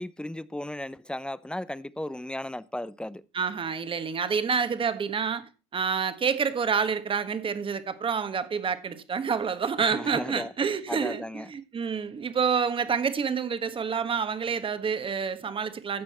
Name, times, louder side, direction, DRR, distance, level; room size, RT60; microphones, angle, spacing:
voice 1, 0.0-3.2 9.8-10.5 10.9-11.5, left 1 dB, 5° left, 0.7 m, -35 dB
voice 2, 3.3-5.4 5.7-16.0, right 6 dB, 35° right, 1.5 m, -28 dB
15.5 x 6.3 x 4.3 m
supercardioid pair, 70°, 15 cm